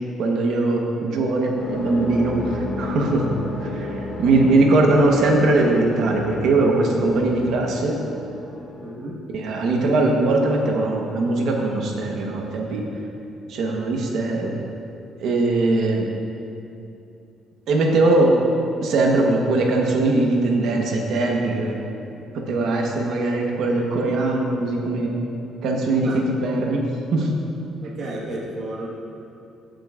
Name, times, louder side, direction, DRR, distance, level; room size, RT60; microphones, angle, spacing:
voice 1, 0.2-3.3 3.6-8.0 9.3-12.9 13.5-14.5 15.2-16.1 17.7-18.4 18.8-21.8 22.3-25.1 25.6-26.1 26.4-26.8 27.1-27.3, right 2 dB, 55° right, 0 dB, 1.1 m, -20 dB
sound 1, 1.5-8.9, left 1 dB, 70° left, 1.9 m, -32 dB
voice 2, 8.8-9.1 26.0-26.2 27.8-28.9, right 1 dB, 40° right, -4 dB, 1.5 m, -32 dB
15.5 x 7.6 x 2.5 m, 2.7 s
cardioid pair, 175°, 0 cm